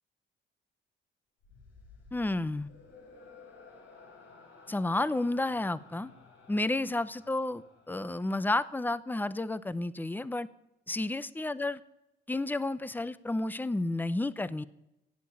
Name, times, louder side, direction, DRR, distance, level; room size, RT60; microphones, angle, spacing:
sound 1, 1.4-8.8, left 4 dB, 80° left, 4.6 m, -55 dB
voice 1, 2.1-2.7 4.7-6.1 6.5-10.5 10.9-11.8 12.3-14.7, left 2 dB, 10° left, 16 dB, 0.7 m, -31 dB
17.0 x 8.3 x 8.7 m, 0.89 s
cardioid pair, 90°, 20 cm